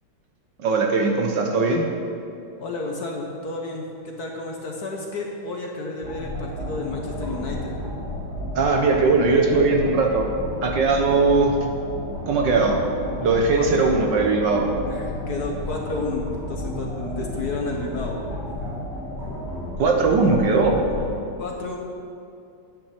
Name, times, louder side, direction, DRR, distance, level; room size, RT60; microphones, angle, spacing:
voice 1, 0.6-1.8 8.5-10.3 10.6-11.5 12.3-12.8 13.2-14.6 19.8-20.8, right 3 dB, 60° right, 2 dB, 1.5 m, -19 dB
voice 2, 2.6-7.7 13.6-13.9 14.9-18.1 21.4-21.8, left 3 dB, 55° left, 0 dB, 1.4 m, -31 dB
sound 1, 6.0-21.1, left 1 dB, 10° right, 2.9 m, -32 dB
9.3 x 9.2 x 5.9 m, 2.6 s
omnidirectional pair, 2.4 m